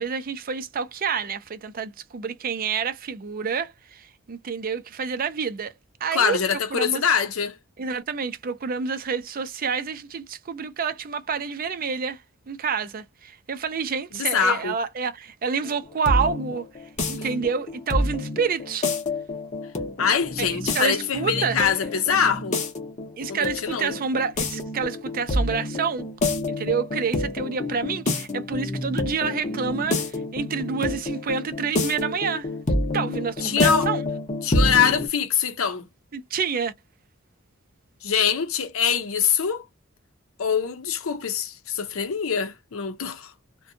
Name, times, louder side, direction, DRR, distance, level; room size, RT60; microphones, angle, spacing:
voice 1, 0.0-5.7 6.0-7.0 7.8-12.2 12.5-16.7 17.1-18.9 20.4-21.6 23.2-26.0 26.5-32.5 32.9-34.0 36.1-36.7, right 6 dB, 45° right, 0.5 m, -28 dB
voice 2, 6.1-7.6 14.1-14.7 20.0-22.6 23.3-24.0 33.4-33.9 34.4-35.9 38.0-39.6 40.4-43.3, left 7 dB, 85° left, 0.6 m, -24 dB
sound 1, 15.6-35.1, left 2 dB, 35° left, 0.7 m, -28 dB
2.6 x 2.2 x 2.6 m
head